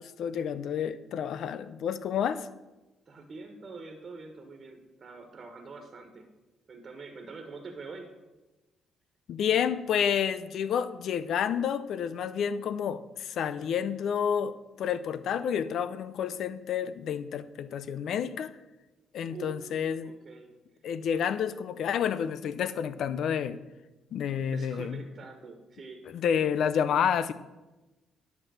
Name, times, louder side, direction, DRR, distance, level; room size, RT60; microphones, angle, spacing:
voice 1, 0.0-2.5 9.3-14.5 14.8-18.5 19.1-20.1 20.8-23.6 24.1-25.0 26.1-27.3, left 8 dB, 70° left, 14 dB, 0.6 m, -29 dB
voice 2, 3.1-6.3 6.7-8.1 19.3-19.7 20.0-20.5 24.5-26.0, right 4 dB, 45° right, 4 dB, 1.5 m, -45 dB
10.5 x 6.2 x 6.5 m, 1.1 s
cardioid pair, 90°, 0 cm